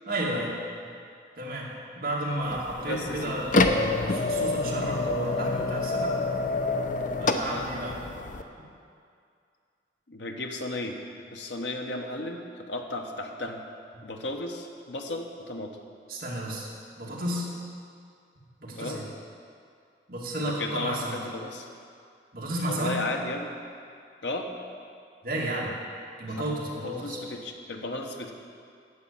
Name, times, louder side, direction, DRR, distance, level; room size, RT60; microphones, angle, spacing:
voice 1, 0.1-0.5 0.8-0.9 1.4-6.2 7.2-8.0 8.6-8.7 14.0-14.1 16.1-16.7 17.0-17.5 18.6-19.0 20.1-21.2 22.3-23.0 25.2-25.8 26.2-27.2, right 1 dB, 55° right, -4 dB, 2.1 m, -32 dB
sound 1, 2.4-8.4, left 2 dB, 45° left, 0.6 m, -27 dB
voice 2, 2.8-3.3 7.4-7.7 10.1-11.0 11.3-13.6 14.0-15.8 18.7-19.0 20.4-21.7 22.7-23.5 24.2-24.5 26.3-26.5 26.8-28.3, left 2 dB, 80° left, 3 dB, 1.0 m, -34 dB
9.7 x 6.4 x 8.5 m, 2.3 s
head